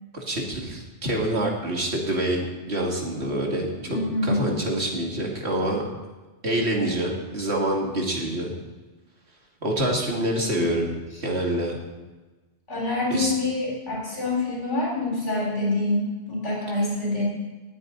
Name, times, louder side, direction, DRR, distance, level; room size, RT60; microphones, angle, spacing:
voice 1, 0.1-5.8 6.4-8.5 9.6-10.9 11.2-11.8 13.1-13.3, right 1 dB, 65° right, -1 dB, 2.7 m, -26 dB
voice 2, 3.9-4.5 10.2-10.5 12.7-17.2, left 2 dB, 85° left, -4 dB, 4.5 m, -26 dB
18.5 x 9.4 x 4.0 m, 1.2 s
omnidirectional pair, 1.2 m